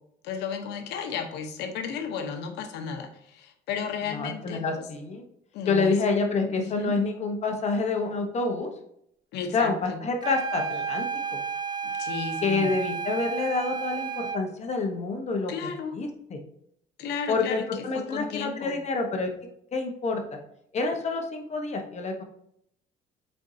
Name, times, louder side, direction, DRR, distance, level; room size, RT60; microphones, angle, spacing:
voice 1, 0.2-4.9 5.5-6.0 6.5-7.0 9.3-10.0 12.0-12.8 15.5-16.0 17.0-18.8, left 6 dB, 85° left, 6 dB, 1.1 m, -34 dB
voice 2, 4.1-5.2 5.7-8.7 9.5-11.4 12.4-16.4 17.3-19.3 19.7-20.2 20.7-22.2, left 3 dB, 40° left, 4 dB, 1.1 m, -28 dB
sound 1, 10.2-14.5, right 5 dB, 25° right, 0.4 m, -32 dB
7.7 x 4.5 x 2.8 m, 0.73 s
cardioid pair, 110°, 17 cm